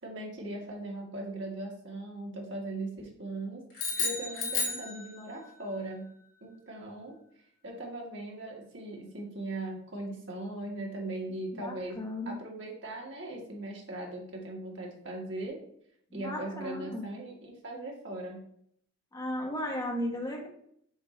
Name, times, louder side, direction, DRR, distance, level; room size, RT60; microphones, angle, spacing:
voice 1, 0.0-6.1 6.4-7.1 7.6-15.6 16.1-18.4, right 2 dB, 60° right, -1 dB, 1.6 m, -39 dB
sound 1, 3.7-5.5, left 4 dB, 70° left, 2.4 m, -32 dB
voice 2, 11.5-12.3 16.1-17.1 19.1-20.5, left 1 dB, 20° left, 0 dB, 1.0 m, -35 dB
7.1 x 2.7 x 5.2 m, 0.68 s
head